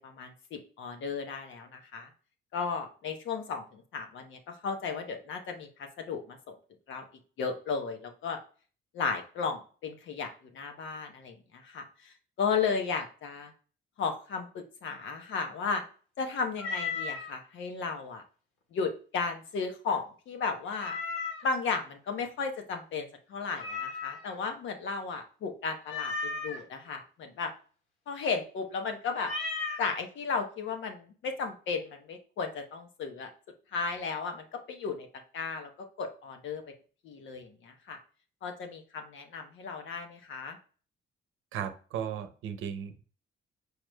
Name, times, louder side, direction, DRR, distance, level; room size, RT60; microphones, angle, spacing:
voice 1, 0.0-2.1 2.5-6.5 6.9-7.1 7.4-8.4 8.9-13.5 14.0-15.8 16.2-18.2 18.7-21.0 21.4-27.5 28.1-29.3 29.8-33.3 33.7-35.1 35.3-35.7 36.0-36.6 37.0-38.0 38.4-40.6, left 5 dB, 75° left, 5 dB, 1.0 m, -34 dB
Meow, 16.6-17.3 20.8-21.6 23.6-24.4 25.9-26.6 29.2-29.9, left 4 dB, 90° left, 1.7 m, -35 dB
voice 2, 41.5-43.0, right 8 dB, 90° right, 9 dB, 0.7 m, -36 dB
4.8 x 4.8 x 2.2 m, 0.39 s
cardioid pair, 90°, 20 cm